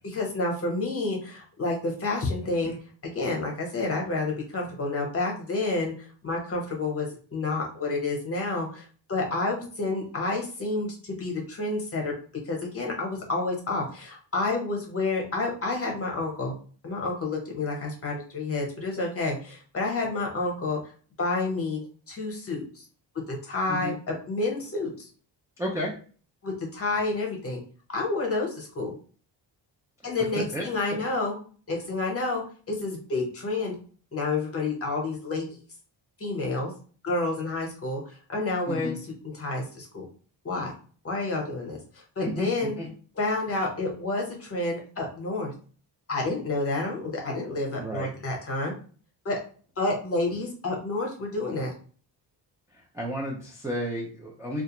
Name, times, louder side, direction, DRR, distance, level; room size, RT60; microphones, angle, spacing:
voice 1, 0.1-2.7 3.0-5.9 6.2-12.1 12.5-16.5 16.8-20.8 21.2-22.8 23.3-24.9 26.4-27.6 27.9-28.9 30.0-31.4 31.7-33.7 34.1-35.5 36.2-36.7 37.0-38.0 38.3-38.9 39.3-40.0 40.4-40.7 41.0-42.7 43.2-45.5 46.1-48.7 49.2-49.4 49.8-51.7, left 3 dB, 35° left, 0 dB, 0.8 m, -29 dB
voice 2, 25.6-26.0 30.0-30.7 38.7-39.0 42.2-42.5 42.8-42.9 47.8-48.1 52.9-54.6, equal, 10° right, -4 dB, 0.3 m, -32 dB
2.4 x 2.1 x 2.9 m, 0.41 s
cardioid pair, 130°, 43 cm